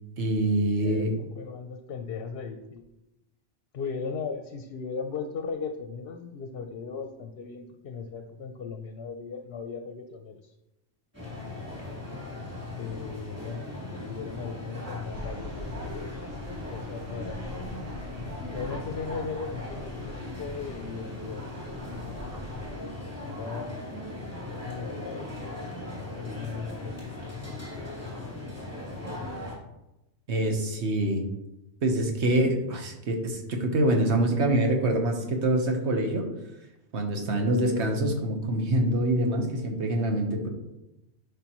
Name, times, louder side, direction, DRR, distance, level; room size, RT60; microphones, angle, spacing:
voice 1, 0.2-1.1 30.3-31.2 31.8-36.3 36.9-40.5, right 1 dB, 70° right, 3 dB, 1.4 m, -25 dB
voice 2, 0.8-2.8 3.7-10.5 12.8-13.6 14.0-16.3 16.6-17.4 18.5-21.4 23.2-24.0 24.5-25.7 25.9-27.1, left 5 dB, 60° left, 6 dB, 0.8 m, -37 dB
sound 1, 11.1-29.5, left 2 dB, 10° right, 3.0 m, -38 dB
sound 2, 15.1-22.7, equal, 85° right, 1.9 m, -43 dB
10.5 x 5.3 x 3.0 m, 0.95 s
omnidirectional pair, 1.2 m